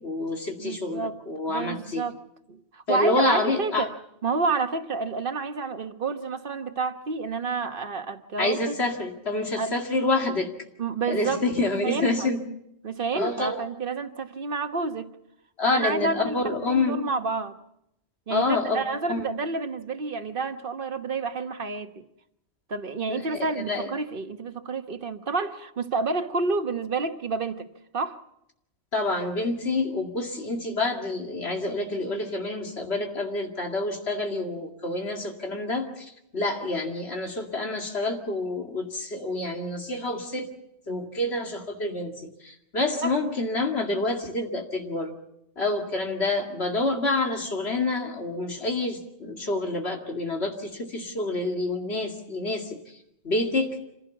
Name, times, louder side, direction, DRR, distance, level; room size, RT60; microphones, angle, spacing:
voice 1, 0.0-2.1 2.9-3.9 8.4-10.5 11.1-12.4 13.1-13.6 15.6-17.0 18.3-18.8 19.1-19.3 23.1-23.9 28.9-40.5 40.9-45.1 45.6-52.8 53.2-53.8, left 2 dB, 70° left, 2.6 m, -28 dB
voice 2, 0.6-1.2 1.5-2.2 2.5-3.9 4.2-8.7 9.6-9.7 10.8-12.3 12.8-15.1 15.7-16.4 16.7-17.6 18.3-22.0 22.7-27.7 27.9-28.2 43.0-43.1, right 4 dB, 55° right, 1.4 m, -29 dB
26.5 x 16.0 x 7.1 m
omnidirectional pair, 1.1 m